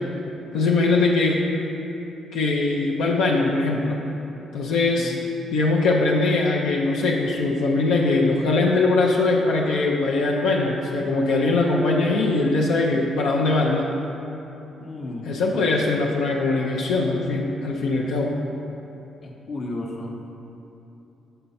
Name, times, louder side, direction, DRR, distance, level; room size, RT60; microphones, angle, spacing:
voice 1, 0.5-1.4 2.3-4.0 4.5-5.2 5.5-13.9 15.3-18.3, left 3 dB, 85° left, -2 dB, 0.5 m, -21 dB
voice 2, 14.8-15.4 19.2-20.1, left 2 dB, 50° left, 0 dB, 0.8 m, -33 dB
6.6 x 4.4 x 4.2 m, 2.9 s
cardioid pair, 90°, 0 cm